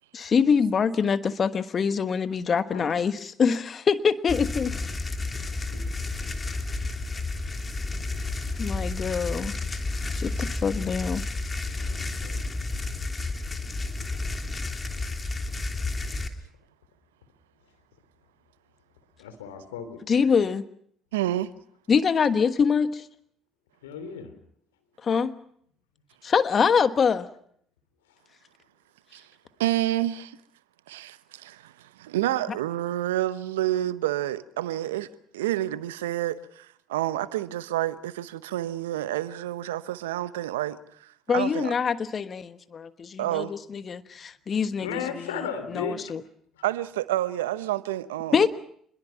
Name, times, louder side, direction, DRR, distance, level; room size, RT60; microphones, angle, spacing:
voice 1, 0.1-4.7 8.6-9.5 10.1-11.2 20.1-20.6 21.9-23.0 25.0-25.3 26.2-27.3 41.3-45.2 45.7-46.2 48.3-48.5, left 6 dB, 45° left, 1.3 m, -24 dB
sound 1, 4.3-16.3, left 3 dB, 25° left, 3.1 m, -31 dB
voice 2, 11.8-12.4 19.2-20.0 23.8-24.3 44.8-46.1 46.6-46.7, left 6 dB, 80° left, 3.1 m, -35 dB
voice 3, 21.1-21.5 29.1-29.3 29.6-30.4 30.9-35.1 35.3-41.7 43.2-43.5 46.6-48.4, right 14 dB, 80° right, 0.9 m, -29 dB
28.0 x 22.0 x 6.0 m
hypercardioid pair, 55°, 0 cm